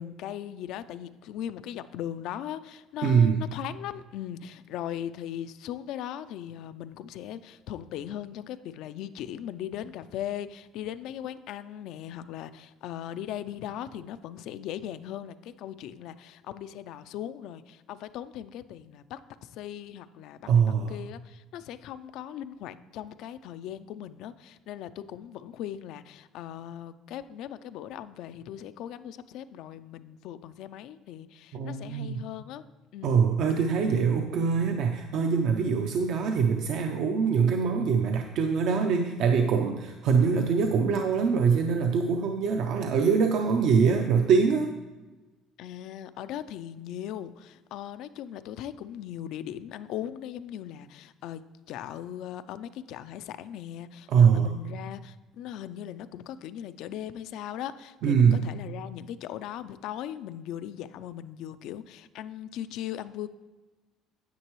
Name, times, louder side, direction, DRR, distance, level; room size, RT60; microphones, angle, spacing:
voice 1, 0.0-32.6 32.9-33.2 35.5-35.9 45.6-63.3, left 11 dB, 70° left, 13 dB, 0.4 m, -39 dB
voice 2, 3.0-3.4 20.4-21.0 31.5-32.2 33.0-44.7 54.1-54.5 58.0-58.4, right 6 dB, 65° right, 4 dB, 0.6 m, -23 dB
9.6 x 8.0 x 3.1 m, 1.2 s
cardioid pair, 130°, 0 cm